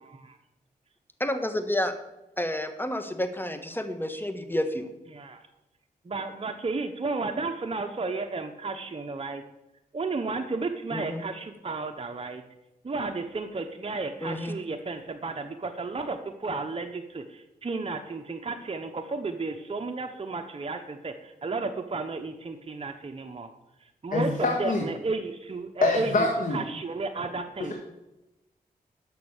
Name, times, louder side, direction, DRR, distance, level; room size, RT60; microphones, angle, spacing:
voice 1, 0.0-0.4 5.1-5.4 6.0-9.4 9.9-12.4 12.8-23.5 24.0-27.7, right 3 dB, 40° right, 6 dB, 0.9 m, -33 dB
voice 2, 1.2-1.9 2.4-4.9 10.9-11.2 14.2-14.5, left 1 dB, 15° left, 8 dB, 1.4 m, -30 dB
voice 3, 24.1-24.8 25.8-26.6, left 2 dB, 55° left, 1 dB, 1.7 m, -25 dB
11.5 x 6.3 x 6.6 m, 0.96 s
cardioid pair, 55°, 16 cm